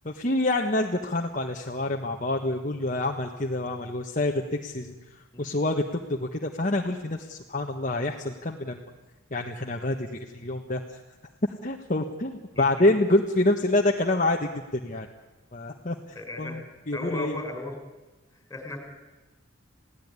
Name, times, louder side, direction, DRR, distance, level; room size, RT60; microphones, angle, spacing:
voice 1, 0.0-8.8 9.3-11.0 11.6-15.1 15.5-16.0 16.4-17.4, left 2 dB, 40° left, 2 dB, 1.4 m, -27 dB
voice 2, 16.1-16.6 16.9-17.7 18.3-18.8, left 1 dB, 15° left, 4 dB, 4.9 m, -35 dB
28.5 x 17.0 x 9.8 m, 1.2 s
head